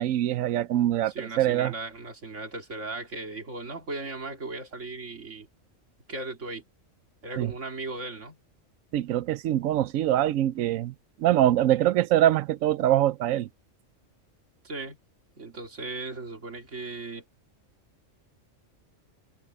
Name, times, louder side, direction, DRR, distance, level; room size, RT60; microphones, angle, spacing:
voice 1, 0.0-1.7 7.4-7.5 8.9-10.9 11.2-13.5, right 12 dB, 85° right, 1.0 m, -24 dB
voice 2, 1.1-5.5 6.1-6.6 7.2-8.4 14.6-15.0 15.4-17.2, right 3 dB, 65° right, 3.0 m, -37 dB
omnidirectional pair, 1.3 m